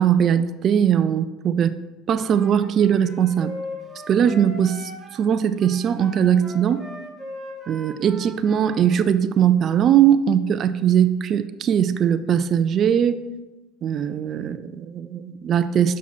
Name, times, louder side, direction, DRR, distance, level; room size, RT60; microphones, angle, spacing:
voice 1, 0.0-1.7 2.1-3.5 4.1-6.8 7.7-13.2 13.8-16.0, right 9 dB, 45° right, 12 dB, 0.3 m, -20 dB
Wind instrument woodwind instrument, 2.2-5.3 5.6-8.9, left 1 dB, ahead, 1.9 m, -39 dB
6.1 x 5.8 x 4.3 m, 1.1 s
hypercardioid pair, 85°, 0 cm